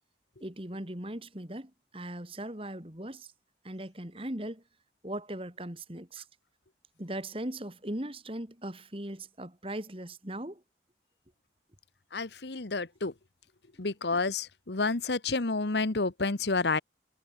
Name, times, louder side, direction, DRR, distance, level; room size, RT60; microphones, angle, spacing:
voice 1, 0.4-3.3 3.6-4.6 5.0-6.2 7.0-10.6, right 1 dB, 30° right, 2.8 m, -39 dB
voice 2, 12.1-13.1 13.8-16.8, left 3 dB, 75° left, 1.2 m, -29 dB
head